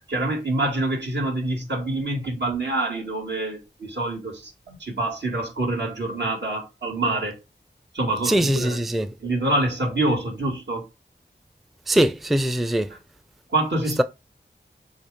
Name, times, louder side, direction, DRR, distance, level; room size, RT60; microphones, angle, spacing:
voice 1, 0.1-7.4 7.9-8.8 9.2-10.8 13.5-14.0, right 2 dB, 65° right, 2.2 m, -26 dB
voice 2, 8.2-9.1 11.9-12.9, right 1 dB, ahead, 0.5 m, -22 dB
7.2 x 2.8 x 5.0 m
wide cardioid pair, 45°, 19 cm